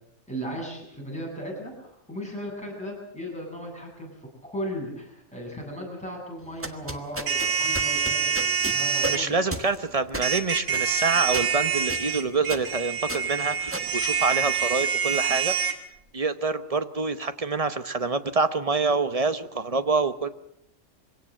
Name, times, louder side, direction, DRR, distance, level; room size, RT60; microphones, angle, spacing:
voice 1, 0.3-4.1 4.4-9.5, equal, 5° left, -2 dB, 7.9 m, -36 dB
sound 1, 6.4-14.8, right 1 dB, 10° right, 1.3 m, -36 dB
sound 2, 7.3-9.2 10.2-15.7, right 6 dB, 80° right, 2.1 m, -26 dB
voice 2, 9.0-15.5 16.1-20.3, right 4 dB, 30° right, 11 dB, 1.0 m, -26 dB
23.0 x 17.5 x 7.6 m, 0.78 s
omnidirectional pair, 1.3 m